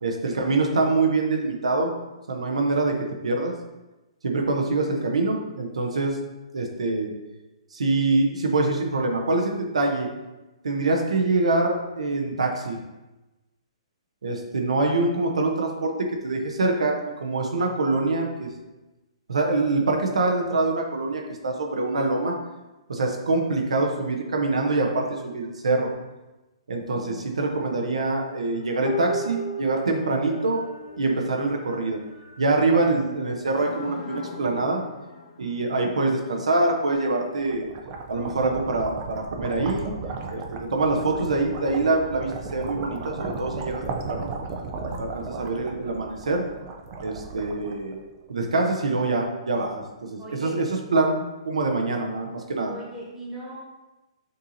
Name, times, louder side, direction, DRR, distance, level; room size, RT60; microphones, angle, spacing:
voice 1, 0.0-1.9 2.3-3.5 4.2-6.2 6.5-7.1 7.7-10.1 10.6-12.8 14.2-18.5 19.3-22.3 22.9-25.9 26.7-30.6 31.0-32.0 32.4-34.8 35.4-37.7 38.1-39.9 40.3-43.8 44.1-44.3 45.0-46.4 47.0-48.0 48.3-52.8, right 2 dB, 90° right, 2 dB, 0.7 m, -25 dB
voice 2, 26.8-27.4 50.2-50.6 52.6-53.6, right 1 dB, 10° right, -7 dB, 1.5 m, -39 dB
sound 1, 27.5-33.0 33.6-35.9 36.9-37.0, equal, 75° left, 0.8 m, -37 dB
sound 2, 37.1-48.3, right 4 dB, 35° right, 0.5 m, -35 dB
6.5 x 2.7 x 2.7 m, 1.1 s
hypercardioid pair, 145°, 3 cm